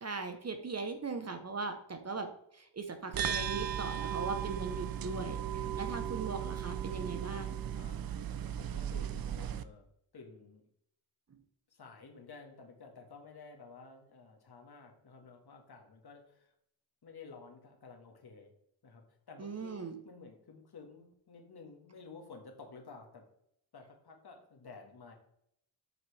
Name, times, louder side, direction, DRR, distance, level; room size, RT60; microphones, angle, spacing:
voice 1, 0.0-7.6 19.4-20.0, right 4 dB, 35° right, 7 dB, 0.9 m, -39 dB
sound 1, 3.1-9.6, right 9 dB, 50° right, 0.5 m, -36 dB
voice 2, 5.5-6.2 7.7-9.9 10.1-10.7 11.7-16.5 17.0-18.5 18.8-19.8 20.1-23.2 23.7-25.1, left 4 dB, 55° left, 2 dB, 1.8 m, -53 dB
8.2 x 5.9 x 3.3 m, 0.73 s
cardioid pair, 90°, 47 cm